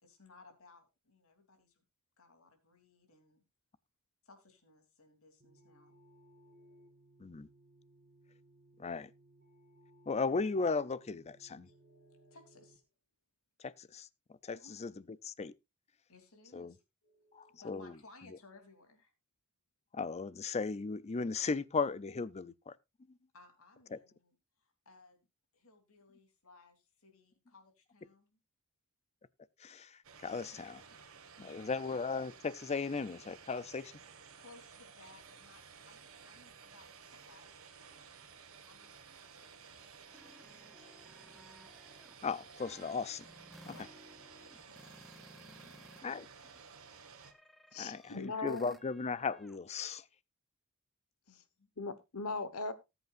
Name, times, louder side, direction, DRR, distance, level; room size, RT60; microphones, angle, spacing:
voice 1, 0.0-1.8 2.2-3.4 4.2-6.9 11.6-12.8 14.5-14.7 16.1-19.1 23.3-25.3 25.5-28.4 30.3-30.6 30.9-31.0 31.4-31.8 34.4-36.0 36.3-38.1 38.6-41.3 43.6-43.9 44.4-44.9 45.4-45.8 51.3-51.7, left 3 dB, 70° left, 3.3 m, -62 dB
sound 1, 5.4-12.8, right 1 dB, 40° right, 1.5 m, -63 dB
voice 2, 8.8-9.1 10.1-11.7 13.6-14.1 14.4-14.9 15.2-15.5 16.5-16.7 17.3-17.9 19.9-22.7 23.9-24.0 29.6-30.8 31.4-33.9 42.2-43.2 46.0-46.3 47.8-50.0, left 4 dB, 30° left, 0.5 m, -36 dB
sound 2, 30.0-47.3, right 6 dB, 70° right, 1.6 m, -55 dB
sound 3, 39.8-46.0 46.3-49.6, equal, ahead, 0.8 m, -59 dB
voice 3, 47.7-48.8 51.8-52.7, left 3 dB, 85° left, 1.3 m, -39 dB
18.5 x 8.1 x 2.5 m
head